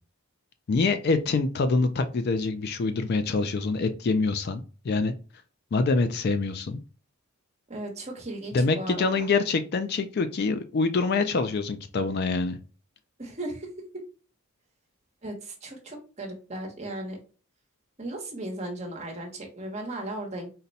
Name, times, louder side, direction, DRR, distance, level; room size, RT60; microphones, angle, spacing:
voice 1, 0.7-5.1 5.7-6.8 8.5-12.6, left 4 dB, 45° left, 9 dB, 0.3 m, -25 dB
voice 2, 7.7-9.3 13.2-13.7 15.2-17.2 18.0-20.5, right 1 dB, 30° right, 1 dB, 1.0 m, -36 dB
4.0 x 2.2 x 4.0 m, 0.36 s
head